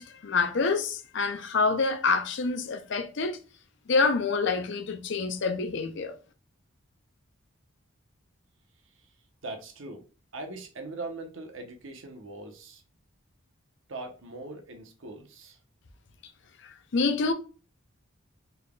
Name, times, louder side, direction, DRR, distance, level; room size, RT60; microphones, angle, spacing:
voice 1, 0.0-3.4 3.9-6.1 16.6-17.3, left 4 dB, 60° left, 0.5 m, -27 dB
voice 2, 9.4-10.1 10.3-12.8 13.9-15.6, right 2 dB, 65° right, 0.9 m, -40 dB
4.0 x 3.4 x 2.2 m
head